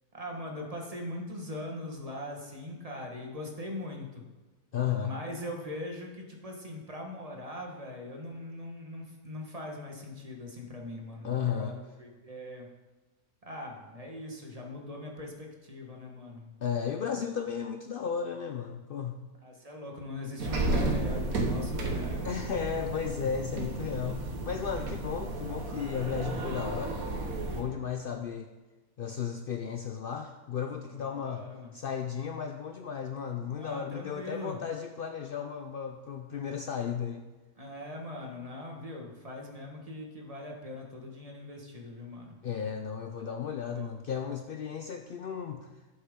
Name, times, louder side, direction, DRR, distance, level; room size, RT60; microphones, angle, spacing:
voice 1, 0.1-4.2 5.0-12.7 13.5-17.1 19.4-22.4 30.9-31.7 33.5-34.6 37.6-42.4 43.2-43.9, left 1 dB, 25° right, 0 dB, 1.3 m, -41 dB
voice 2, 4.7-5.2 11.2-11.8 16.6-19.1 22.2-27.0 27.5-28.5 29.0-31.4 31.7-37.3 42.4-45.7, left 7 dB, 85° left, 5 dB, 0.4 m, -34 dB
sound 1, 20.4-27.6, right 2 dB, 65° right, 1.6 m, -33 dB
12.0 x 7.2 x 3.7 m, 1.2 s
omnidirectional pair, 1.6 m